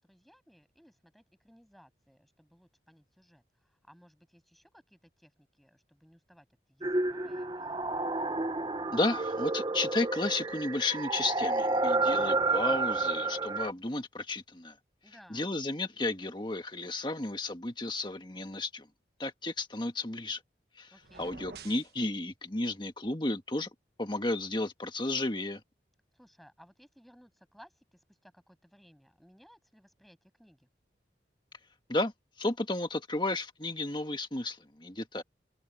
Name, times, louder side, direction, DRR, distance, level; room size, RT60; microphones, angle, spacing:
voice 1, 0.0-7.9 15.0-15.5 20.9-21.3 26.1-30.7, equal, ahead, 7.9 m, -60 dB
sound 1, 6.8-13.7, right 3 dB, 25° right, 1.0 m, -30 dB
voice 2, 8.9-14.7 15.3-18.9 19.2-20.4 20.8-20.9 21.2-23.7 24.0-25.6 31.9-32.1 32.4-35.2, left 2 dB, 25° left, 1.7 m, -33 dB
sound 2, 21.0-21.9, right 4 dB, 60° right, 1.3 m, -48 dB
head